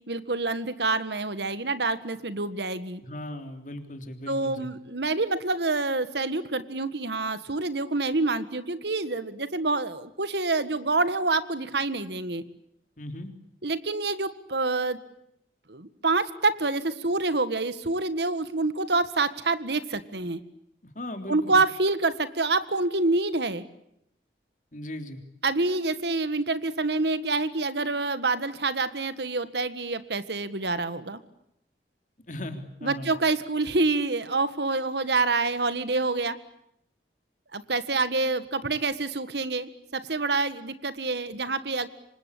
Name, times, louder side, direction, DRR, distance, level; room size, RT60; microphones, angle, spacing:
voice 1, 0.1-3.0 4.3-12.4 13.6-15.0 15.7-20.4 21.3-23.6 25.4-31.2 32.8-36.4 37.5-41.9, right 3 dB, 70° right, 13 dB, 1.7 m, -27 dB
voice 2, 3.0-4.7 13.0-13.3 20.8-21.6 24.7-25.2 32.3-33.1, left 1 dB, 45° left, 7 dB, 3.5 m, -38 dB
28.0 x 25.0 x 8.5 m, 0.75 s
head